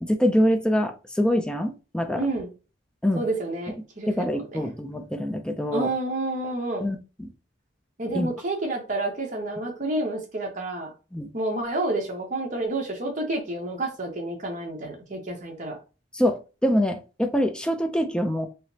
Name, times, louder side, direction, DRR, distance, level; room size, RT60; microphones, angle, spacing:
voice 1, 0.0-2.3 3.0-3.2 4.1-5.9 6.8-7.3 8.1-8.3 11.1-11.3 16.1-18.5, equal, 5° left, 0.4 m, -25 dB
voice 2, 2.2-2.5 3.1-4.7 5.7-6.9 8.0-10.9 11.3-15.8, right 2 dB, 45° right, 0.9 m, -29 dB
4.8 x 2.0 x 2.7 m
head